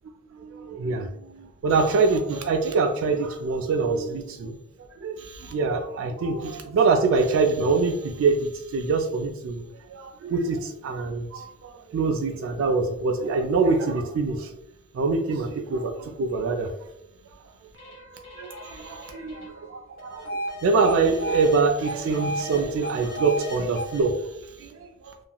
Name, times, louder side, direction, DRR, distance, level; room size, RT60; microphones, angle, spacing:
voice 1, 0.3-4.6 5.0-14.5 14.9-16.9 18.4-25.1, right 4 dB, 70° right, 4 dB, 0.3 m, -25 dB
sound 1, 17.7-21.6 21.8-24.0, right 1 dB, 80° left, 1.1 m, -34 dB
2.8 x 2.4 x 2.2 m, 0.82 s
head